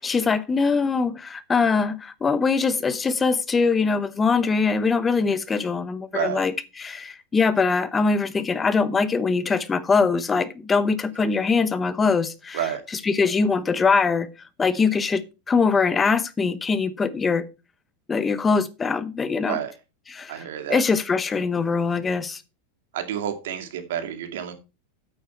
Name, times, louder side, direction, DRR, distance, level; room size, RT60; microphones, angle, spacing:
voice 1, 0.0-12.6 13.0-14.3 14.6-17.5 18.1-19.6 20.1-20.3 20.7-22.4, left 4 dB, 15° left, 0.9 m, -22 dB
voice 2, 20.3-20.8 22.9-24.5, right 10 dB, 75° right, 2.3 m, -29 dB
8.8 x 8.4 x 4.5 m
supercardioid pair, 140°, 0 cm